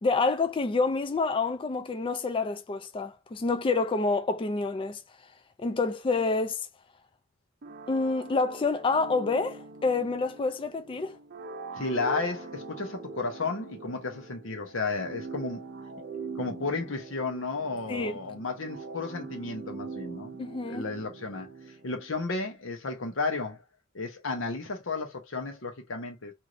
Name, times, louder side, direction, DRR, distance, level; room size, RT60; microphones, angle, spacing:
voice 1, 0.0-5.0 5.6-6.7 7.9-11.2 17.9-18.2 20.4-20.9, left 3 dB, 25° left, 0.3 m, -28 dB
sound 1, 7.6-22.2, right 4 dB, 50° right, 0.5 m, -42 dB
voice 2, 11.7-15.6 16.4-20.3 20.7-21.5 21.8-23.6 23.9-26.3, left 3 dB, 70° left, 0.9 m, -33 dB
3.1 x 2.7 x 2.5 m
head